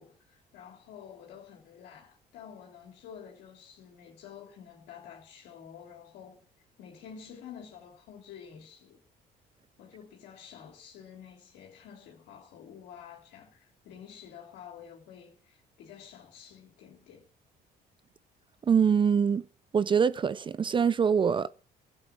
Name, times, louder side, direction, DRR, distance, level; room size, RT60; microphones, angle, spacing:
voice 1, 0.0-6.5 6.8-9.0 9.8-17.3, left 8 dB, 85° left, 3.1 m, -49 dB
voice 2, 18.6-19.5 19.7-21.5, right 7 dB, 30° right, 0.5 m, -24 dB
12.5 x 8.9 x 6.2 m
cardioid pair, 110°, 17 cm